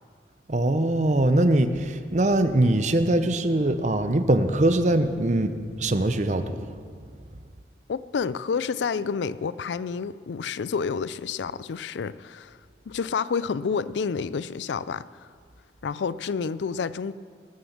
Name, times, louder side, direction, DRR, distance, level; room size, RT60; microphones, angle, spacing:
voice 1, 0.5-6.6, right 1 dB, 40° right, 10 dB, 0.7 m, -22 dB
voice 2, 7.9-12.6 12.9-15.0 15.8-17.1, left 5 dB, 80° left, 17 dB, 0.4 m, -29 dB
19.0 x 6.9 x 7.2 m, 2.1 s
head